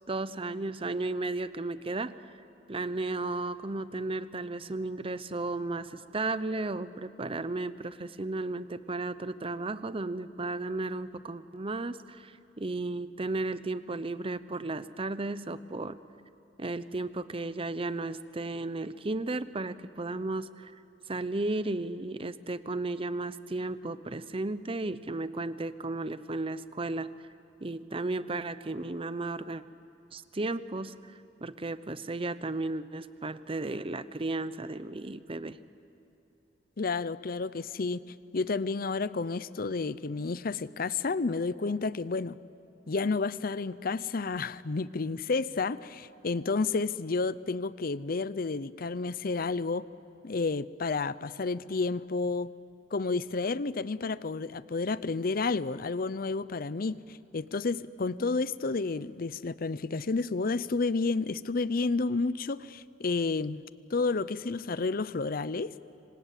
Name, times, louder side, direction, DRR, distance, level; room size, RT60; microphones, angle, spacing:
voice 1, 0.1-2.3 2.7-16.0 16.6-20.7 21.1-27.1 27.6-29.6 30.1-31.1 31.4-35.6, right 2 dB, 30° right, 0.8 m, -34 dB
voice 2, 36.8-38.0 38.3-42.3 42.9-49.8 50.2-52.5 52.9-63.6 63.9-65.7, left 4 dB, 55° left, 0.6 m, -31 dB
27.0 x 25.5 x 8.4 m
head